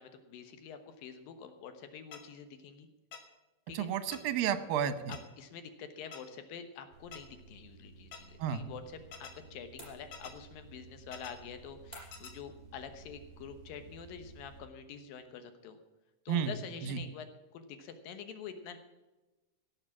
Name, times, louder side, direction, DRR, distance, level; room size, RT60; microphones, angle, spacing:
voice 1, 0.0-2.9 3.7-3.9 5.1-15.8 16.3-18.8, left 7 dB, 75° left, 8 dB, 2.8 m, -47 dB
sound 1, 2.1-2.2 3.1-3.2 4.1-4.2 5.1-5.2 6.1-6.2 7.1-7.2 8.1-8.2 9.1-9.3 10.1-10.3 11.1-11.3 12.1-12.3, left 6 dB, 55° left, 2.4 m, -46 dB
voice 2, 3.7-5.2 8.4-8.6 16.3-16.5 16.8-17.0, right 9 dB, 80° right, 12 dB, 2.7 m, -32 dB
sound 2, 6.9-14.6, right 5 dB, 45° right, 2.8 m, -55 dB
sound 3, 9.8-10.5 11.9-12.4, equal, 10° left, 5.7 m, -52 dB
17.5 x 7.3 x 7.3 m, 1.1 s
omnidirectional pair, 4.2 m